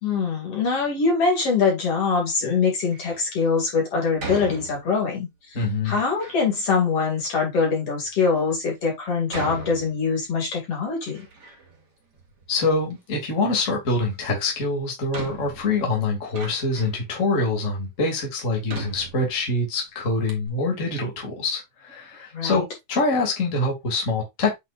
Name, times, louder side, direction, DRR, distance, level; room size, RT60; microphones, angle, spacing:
voice 1, 0.0-5.6 5.8-11.2 22.3-22.6, left 5 dB, 50° left, 3.3 m, -23 dB
Door, 2.8-3.3 4.2-5.2 5.8-6.5 7.2-7.3 8.0-8.1 9.3-10.4 10.8-11.9 12.1-13.0 14.3-14.4 15.1-17.1 17.7-17.8 18.7-19.7 20.0-20.1 20.3-20.5, right 3 dB, 35° right, 2.2 m, -38 dB
voice 2, 5.5-6.0 12.5-22.6 22.9-24.6, left 3 dB, 25° left, 2.6 m, -25 dB
8.6 x 5.7 x 2.5 m
omnidirectional pair, 3.5 m